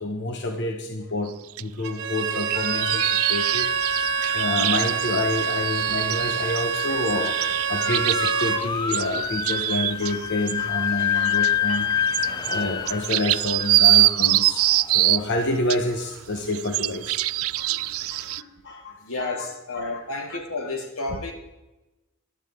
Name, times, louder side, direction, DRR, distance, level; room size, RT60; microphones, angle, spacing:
voice 1, 0.0-1.3 1.6-3.7 4.3-14.6 14.9-17.2 17.6-19.5 19.7-20.0 20.3-20.4 21.1-21.2, left 2 dB, 55° left, 4 dB, 1.1 m, -28 dB
sound 1, 1.6-1.7 2.2-10.1 10.5-10.6 11.0-15.3 15.7-18.4, right 17 dB, 85° right, 0.4 m, -24 dB
Bowed string instrument, 1.8-8.7, right 7 dB, 60° right, 1.0 m, -27 dB
sound 2, 2.5-15.6, left 7 dB, 20° left, 0.3 m, -29 dB
voice 2, 19.0-21.3, left 2 dB, 85° left, 2 dB, 2.7 m, -31 dB
16.0 x 11.5 x 3.8 m, 1.0 s
head